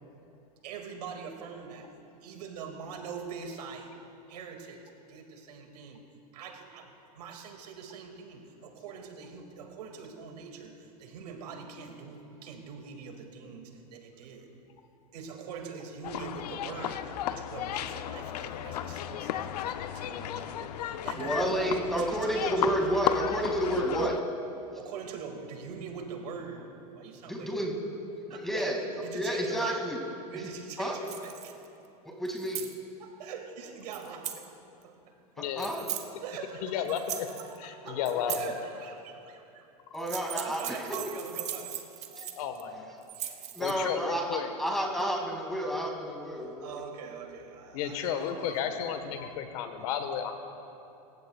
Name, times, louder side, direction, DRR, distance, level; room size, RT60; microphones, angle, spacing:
voice 1, 0.6-1.9 2.2-3.9 4.3-6.0 6.3-14.5 15.1-22.5 24.7-26.6 26.9-27.5 28.3-28.7 29.0-29.8 30.3-31.6 33.0-35.1 36.2-38.0 38.3-39.7 40.2-41.8 43.1-43.4 46.6-48.8, right 6 dB, 85° right, 3 dB, 2.2 m, -43 dB
sound 1, 16.0-24.2, left 11 dB, 85° left, 0.6 m, -34 dB
voice 2, 21.2-24.8 27.1-27.8 28.3-28.8 29.1-30.0 30.3-30.5 30.8-31.0 32.0-32.7 35.4-35.8 38.0-38.1 39.9-41.0 42.2-42.3 43.5-46.8, equal, ahead, 0 dB, 2.3 m, -31 dB
sound 2, 31.1-31.7 32.3-32.7 33.9-34.5 35.6-36.1 36.9-37.6 38.1-38.5 39.9-42.6 43.0-43.7, right 10 dB, 35° right, 1.1 m, -38 dB
voice 3, 35.4-35.7 36.6-37.3 37.6-38.5 42.1-42.9 43.6-44.5 47.7-50.3, left 8 dB, 65° left, 7 dB, 1.3 m, -33 dB
25.0 x 15.5 x 2.4 m, 2.9 s
supercardioid pair, 130°, 20 cm